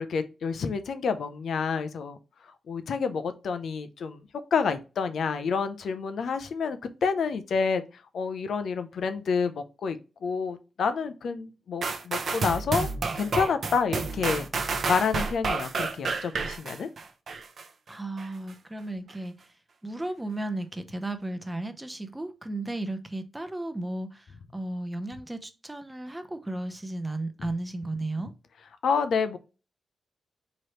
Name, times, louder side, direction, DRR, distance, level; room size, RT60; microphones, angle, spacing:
voice 1, 0.0-2.2 2.7-4.2 4.5-12.9 13.2-14.5 14.9-16.9 28.8-29.4, left 5 dB, 75° left, 0.6 m, -28 dB
sound 1, 11.8-17.6 18.2-18.3, right 4 dB, 60° right, 0.7 m, -30 dB
voice 2, 17.9-19.5 19.8-28.3, right 2 dB, 10° right, 0.7 m, -34 dB
4.6 x 3.1 x 3.0 m
cardioid pair, 90°, 0 cm